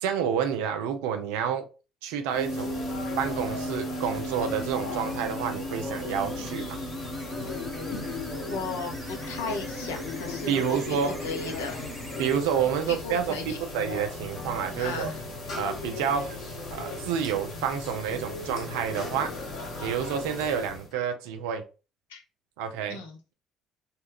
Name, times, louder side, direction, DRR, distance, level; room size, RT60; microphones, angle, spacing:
voice 1, 0.0-1.6 2.0-2.7 3.2-6.8 10.5-11.2 12.2-15.1 15.6-16.4 16.7-19.3 19.8-21.6 22.6-23.0, right 8 dB, 75° right, 0.3 m, -29 dB
sound 1, 2.3-20.9, left 3 dB, 60° left, 0.9 m, -37 dB
sound 2, 2.4-12.4, equal, 10° right, 0.8 m, -37 dB
voice 2, 8.5-11.8 12.9-13.6 14.7-15.2 22.1-22.2 22.9-23.2, left 4 dB, 80° left, 0.6 m, -36 dB
sound 3, 14.3-20.4, left 2 dB, 20° left, 0.5 m, -49 dB
2.3 x 2.1 x 3.3 m
hypercardioid pair, 55°, 0 cm